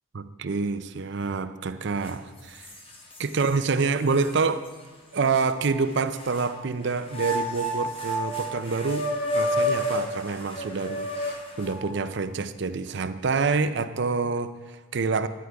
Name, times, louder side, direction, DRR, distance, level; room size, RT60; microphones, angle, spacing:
voice 1, 0.1-2.7 3.2-4.7 5.1-9.1 9.3-15.3, right 4 dB, 55° right, 11 dB, 0.5 m, -27 dB
sound 1, 2.0-2.1 2.6-3.5 4.2-4.3 5.4-6.5 7.1-12.0, equal, 25° left, 1.1 m, -30 dB
10.0 x 10.0 x 4.6 m, 1.3 s
head